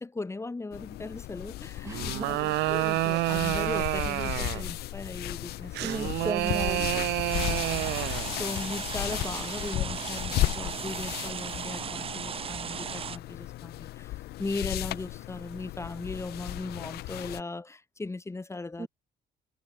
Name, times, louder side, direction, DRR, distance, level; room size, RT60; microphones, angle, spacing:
voice 1, 0.0-5.9 6.2-6.3 7.3-7.9 8.4-18.9, left 3 dB, 15° left, 2.9 m, -38 dB
sound 1, 0.7-17.4, left 17 dB, 70° left, 0.6 m, -35 dB
voice 2, 1.8-2.3 5.8-7.1 18.8-18.9, right 3 dB, 15° right, 1.5 m, -35 dB
sound 2, 1.9-4.7 5.7-8.3, right 20 dB, 85° right, 0.8 m, -29 dB
sound 3, 7.3-13.2, right 7 dB, 35° right, 0.7 m, -36 dB
cardioid pair, 110°, 17 cm